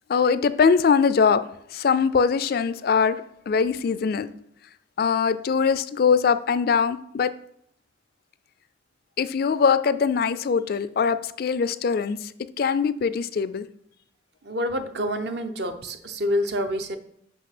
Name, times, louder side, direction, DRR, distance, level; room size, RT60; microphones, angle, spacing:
voice 1, 0.1-1.4 1.7-4.3 5.0-7.3 9.2-12.3 12.6-13.7, left 6 dB, 50° left, 14 dB, 0.4 m, -22 dB
voice 2, 14.4-17.0, equal, 60° right, 7 dB, 0.8 m, -27 dB
5.9 x 5.5 x 5.9 m, 0.69 s
head